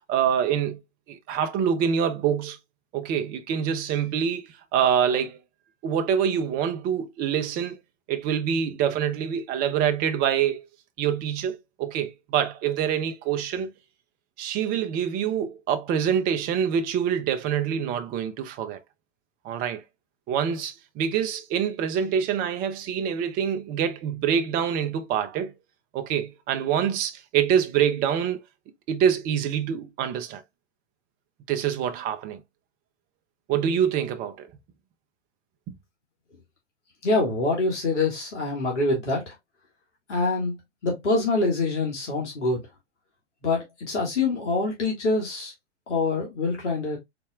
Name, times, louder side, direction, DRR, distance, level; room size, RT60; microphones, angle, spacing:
voice 1, 0.1-0.8 1.1-2.6 2.9-5.4 5.8-7.8 8.1-10.7 11.0-13.7 14.4-18.8 19.4-19.8 20.3-25.5 25.9-28.4 28.9-30.4 31.5-32.4 33.5-34.5 35.7-35.8, right 8 dB, 25° right, 0.5 m, -25 dB
voice 2, 37.0-39.3 40.1-40.5 40.8-42.6 43.4-45.5 45.9-47.0, left 3 dB, 75° left, 2.0 m, -25 dB
4.1 x 3.5 x 2.3 m
hypercardioid pair, 105°, 36 cm